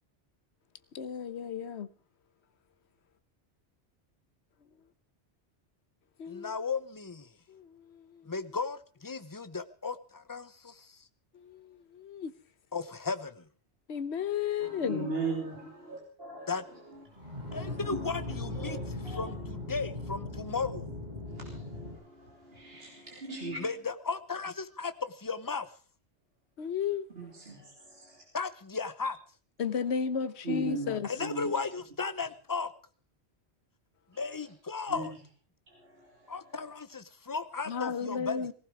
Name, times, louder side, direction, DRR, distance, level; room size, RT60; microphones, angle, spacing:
voice 1, 0.9-1.9 6.2-6.5 7.5-8.3 11.3-12.3 13.9-15.1 23.3-23.7 26.6-27.1 29.6-31.1 37.7-38.5, left 7 dB, 80° left, 1.2 m, -34 dB
voice 2, 6.3-7.3 8.2-8.8 9.0-10.9 12.7-13.5 16.5-16.6 17.5-18.8 19.1-20.9 23.6-25.7 28.3-29.2 31.0-32.7 34.2-35.1 36.3-38.5, left 4 dB, 20° left, 0.9 m, -35 dB
voice 3, 14.6-17.0 17.5-17.6 17.9-18.1 18.5-19.3 21.3-23.6 27.2-28.2 30.4-31.5 34.1-34.2 34.9-35.1 35.7-36.6, right 2 dB, 65° right, 3.5 m, -39 dB
sound 1, 17.0-21.9, left 2 dB, 40° right, 6.8 m, -39 dB
18.0 x 15.5 x 4.6 m
omnidirectional pair, 1.1 m